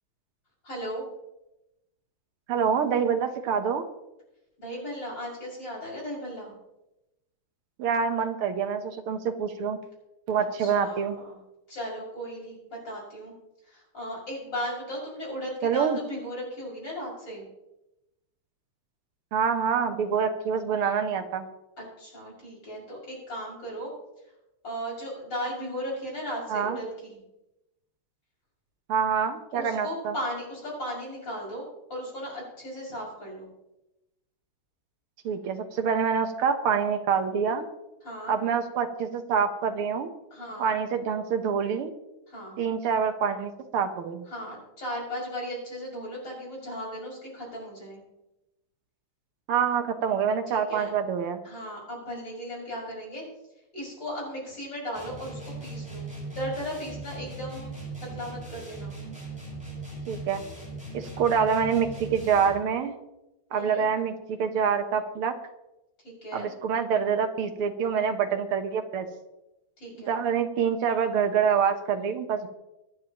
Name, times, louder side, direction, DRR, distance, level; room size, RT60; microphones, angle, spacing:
voice 1, 0.6-1.0 4.6-6.5 10.6-11.4 11.7-13.3 13.7-17.4 21.8-23.9 24.6-27.2 29.5-31.6 31.9-33.5 38.0-38.4 40.3-40.7 42.3-42.6 44.3-48.0 50.5-50.9 51.4-53.2 53.7-57.7 58.1-59.0 63.5-63.9 66.0-66.5 69.8-70.2, equal, 55° left, -5 dB, 7.0 m, -36 dB
voice 2, 2.5-3.9 7.8-9.8 10.3-11.2 15.6-16.0 19.3-21.5 26.5-26.8 28.9-30.1 35.2-37.7 38.3-40.1 40.6-41.9 42.6-44.3 49.5-51.4 60.1-60.4 60.9-62.9 63.5-65.4 66.3-69.1 70.1-72.5, right 7 dB, 80° right, 7 dB, 2.0 m, -26 dB
sound 1, 54.9-62.7, right 2 dB, 5° right, 5.9 m, -39 dB
25.0 x 9.4 x 3.0 m, 0.94 s
omnidirectional pair, 2.4 m